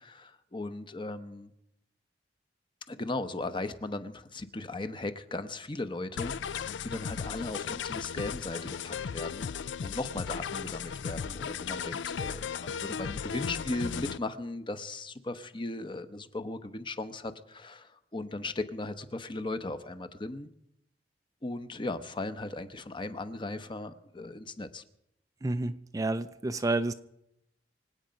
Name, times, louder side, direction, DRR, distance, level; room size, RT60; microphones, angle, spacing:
voice 1, 0.0-1.5 2.9-9.5 9.8-20.5 21.4-24.8, left 2 dB, 30° left, 11 dB, 0.8 m, -37 dB
sound 1, 6.2-14.2, left 7 dB, 90° left, 0.4 m, -36 dB
voice 2, 25.4-26.9, right 2 dB, 20° right, 10 dB, 0.4 m, -30 dB
25.5 x 8.8 x 5.2 m, 0.82 s
head